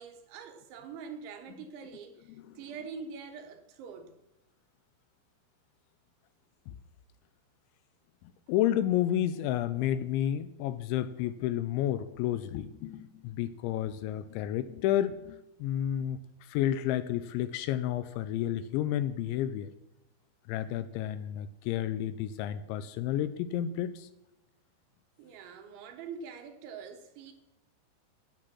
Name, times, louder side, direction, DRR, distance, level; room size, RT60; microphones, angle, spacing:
voice 1, 0.0-4.2 25.2-27.3, right 6 dB, 75° right, 3.5 m, -44 dB
voice 2, 8.5-19.7 20.5-24.1, left 11 dB, 85° left, 2.8 m, -31 dB
12.5 x 9.0 x 6.0 m
omnidirectional pair, 5.5 m